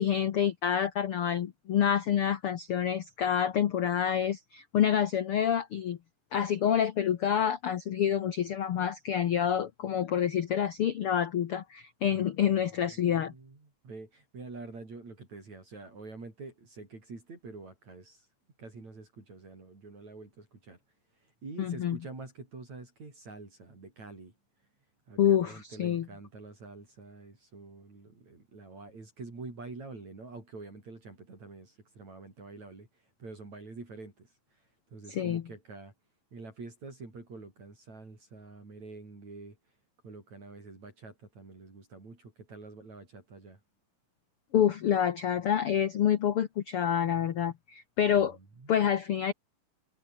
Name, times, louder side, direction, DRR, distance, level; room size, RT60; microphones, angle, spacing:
voice 1, 0.0-6.0 6.3-13.3 21.6-22.0 25.2-26.0 35.1-35.4 44.5-48.4 48.7-49.3, left 9 dB, 75° left, 1.2 m, -27 dB
voice 2, 12.9-18.3 18.6-20.8 21.1-24.3 25.1-35.9 36.3-39.6 40.0-43.6 48.2-48.9, right 3 dB, 50° right, 7.7 m, -47 dB
omnidirectional pair, 4.2 m